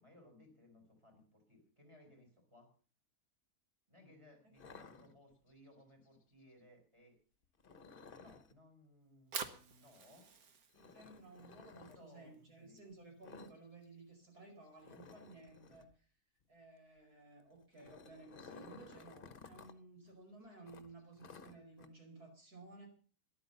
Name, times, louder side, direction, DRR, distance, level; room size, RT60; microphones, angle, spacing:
voice 1, 0.0-2.7 3.9-7.2 8.2-10.3 11.9-12.9, left 1 dB, 20° right, 4 dB, 5.7 m, -63 dB
sound 1, 4.6-5.6 7.6-8.5 10.7-12.0 13.2-13.6 13.8-14.0 14.3-14.4 14.8-15.9 17.5-19.7 20.1-20.2 20.7-21.9, left 5 dB, 40° left, 1.1 m, -56 dB
Fire, 9.0-15.2, right 6 dB, 75° right, 1.8 m, -50 dB
voice 2, 10.7-16.1 16.5-22.9, right 3 dB, 90° right, 2 dB, 5.7 m, -56 dB
13.0 x 11.0 x 6.8 m, 0.40 s
omnidirectional pair, 1.6 m